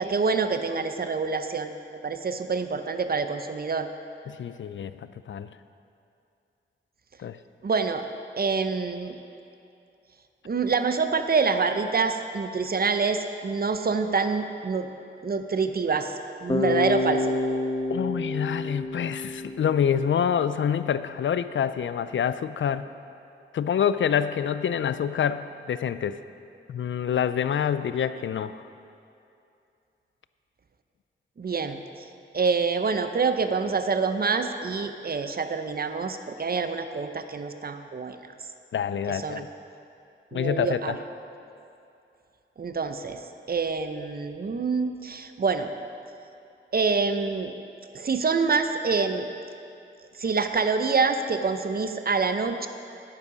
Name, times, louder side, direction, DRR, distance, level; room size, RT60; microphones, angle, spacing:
voice 1, 0.0-3.9 7.6-8.0 8.4-9.2 10.4-14.9 15.2-17.4 31.4-31.8 32.3-38.2 39.1-39.4 40.3-41.0 42.6-43.2 43.5-45.7 46.7-47.5 47.9-49.3 50.2-52.7, right 4 dB, 50° right, 8 dB, 0.6 m, -26 dB
voice 2, 4.3-5.5 7.2-7.4 17.9-22.9 23.5-26.2 26.7-28.6 38.7-39.5 40.3-41.0, left 8 dB, 70° left, 13 dB, 0.4 m, -27 dB
Bass guitar, 16.5-20.5, left 2 dB, 20° left, 1.1 m, -29 dB
9.7 x 9.7 x 5.1 m, 2.6 s
wide cardioid pair, 85°, 20 cm